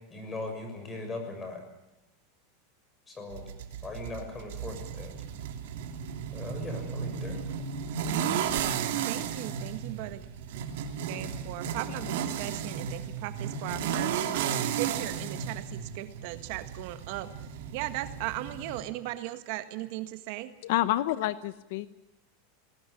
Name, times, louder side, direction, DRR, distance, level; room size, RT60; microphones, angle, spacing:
voice 1, 0.1-1.6 3.1-3.5 3.8-5.1 6.3-7.4, left 2 dB, 15° left, 4 dB, 6.6 m, -39 dB
sound 1, 3.3-18.8, right 8 dB, 70° right, 3.1 m, -34 dB
voice 2, 9.0-10.2 11.1-20.5, right 15 dB, 50° right, 11 dB, 1.5 m, -38 dB
voice 3, 20.6-21.9, left 15 dB, 60° left, 15 dB, 0.9 m, -28 dB
20.5 x 18.5 x 10.0 m, 0.93 s
supercardioid pair, 165°, 0 cm